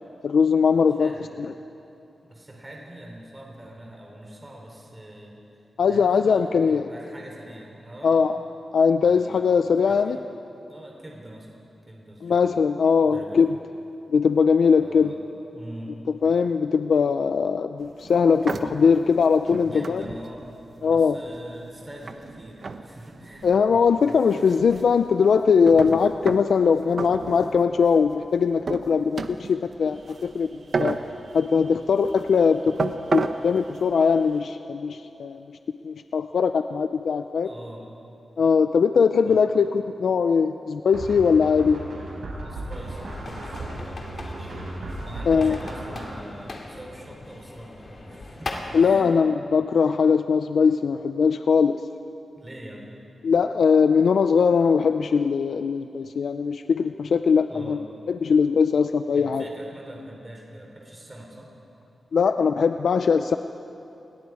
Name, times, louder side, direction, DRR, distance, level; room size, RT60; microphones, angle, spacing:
voice 1, 0.2-1.1 1.4-1.5 5.8-6.8 8.0-8.4 8.7-10.2 12.2-13.5 14.1-15.1 16.2-20.0 20.8-21.2 23.4-30.5 30.8-31.0 31.3-35.6 35.8-37.5 38.4-39.7 40.0-41.8 45.3-45.6 48.7-51.8 53.2-57.8 58.1-59.4 62.1-63.4, left 6 dB, 75° left, 8 dB, 0.5 m, -20 dB
voice 2, 1.0-1.5 2.2-8.3 9.0-9.5 9.9-10.2 10.7-11.5 11.9-12.4 13.0-13.4 14.7-16.0 19.5-20.5 20.8-24.4 37.4-37.9 39.2-39.6 42.3-44.6 45.0-49.1 49.7-49.8 52.4-52.9 57.5-57.9 59.1-61.5, right 1 dB, 20° right, -1 dB, 3.4 m, -43 dB
sound 1, 17.8-34.4, right 4 dB, 55° right, 1.0 m, -35 dB
sound 2, 40.9-46.1, right 2 dB, 80° right, 5.4 m, -36 dB
sound 3, 42.7-48.9, left 2 dB, 50° left, 2.4 m, -39 dB
29.5 x 21.0 x 4.8 m, 2.8 s
wide cardioid pair, 110°, 0 cm